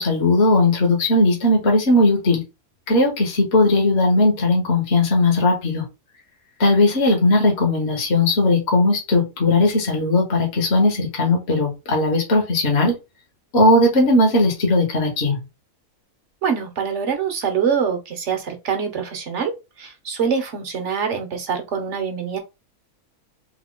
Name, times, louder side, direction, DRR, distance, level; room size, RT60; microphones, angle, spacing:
voice 1, 0.0-2.4 2.9-5.8 6.6-13.0 13.5-15.4, left 2 dB, 45° left, 1.4 m, -18 dB
voice 2, 16.4-22.4, right 6 dB, 55° right, 1.1 m, -24 dB
3.6 x 2.9 x 3.7 m
omnidirectional pair, 1.6 m